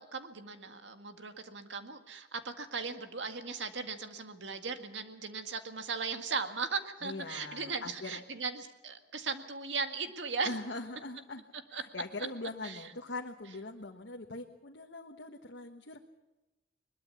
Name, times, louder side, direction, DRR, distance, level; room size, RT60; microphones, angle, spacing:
voice 1, 0.0-10.5 11.7-11.8 12.6-12.8, right 5 dB, 80° right, 7 dB, 1.9 m, -37 dB
voice 2, 7.0-8.2 10.4-11.4 11.7-16.0, left 2 dB, 80° left, 2 dB, 1.3 m, -42 dB
21.5 x 21.5 x 7.1 m, 1.0 s
head